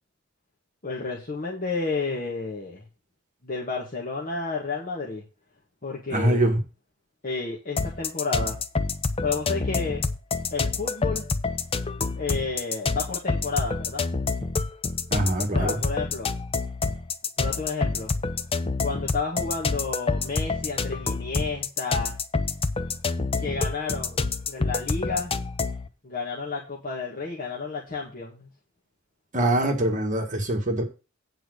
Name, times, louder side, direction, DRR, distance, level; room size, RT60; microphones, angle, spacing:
voice 1, 0.8-2.8 3.4-5.2 5.8-6.4 7.2-8.6 9.2-10.1 10.5-11.2 12.0-14.1 15.4-16.3 17.4-18.1 18.8-22.2 23.4-24.2 24.5-25.3 26.0-28.5, left 4 dB, 45° left, -3 dB, 1.8 m, -31 dB
voice 2, 6.1-6.6 15.1-15.8 29.3-30.8, right 1 dB, 40° right, 3 dB, 1.8 m, -23 dB
sound 1, 7.8-25.9, left 4 dB, 30° left, 0.6 m, -28 dB
8.9 x 4.6 x 6.4 m, 0.32 s
head